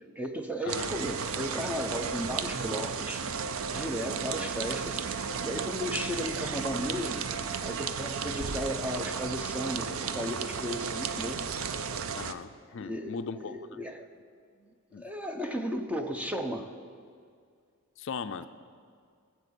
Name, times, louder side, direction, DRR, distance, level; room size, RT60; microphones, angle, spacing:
voice 1, 0.2-3.3 3.7-7.3 7.6-11.4 12.8-14.1 14.6-14.7 15.0-16.7, equal, 5° right, 5 dB, 0.7 m, -35 dB
sound 1, 0.7-12.3, right 6 dB, 70° right, 0.6 m, -34 dB
voice 2, 12.2-13.6 14.9-15.1 18.0-18.5, left 5 dB, 55° left, 10 dB, 0.4 m, -38 dB
19.0 x 7.3 x 6.9 m, 2.2 s
head